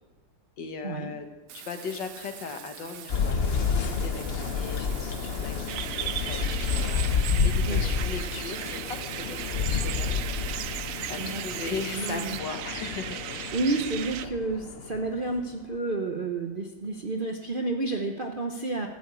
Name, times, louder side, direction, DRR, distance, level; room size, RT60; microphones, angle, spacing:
voice 1, 0.6-1.3 1.5-7.1 7.4-9.0 9.3-10.3 11.1-13.8, left 5 dB, 70° left, 6 dB, 1.9 m, -38 dB
Bathtub (filling or washing), 1.5-12.4, right 9 dB, 60° right, 1.0 m, -45 dB
sound 1, 3.1-15.5, left 5 dB, 50° left, 0.8 m, -30 dB
sound 2, 5.7-14.3, right 11 dB, 85° right, 0.7 m, -36 dB
voice 2, 11.9-12.4 13.5-18.9, right 3 dB, 45° right, 3 dB, 0.7 m, -30 dB
12.5 x 7.1 x 8.2 m, 1.2 s
omnidirectional pair, 2.0 m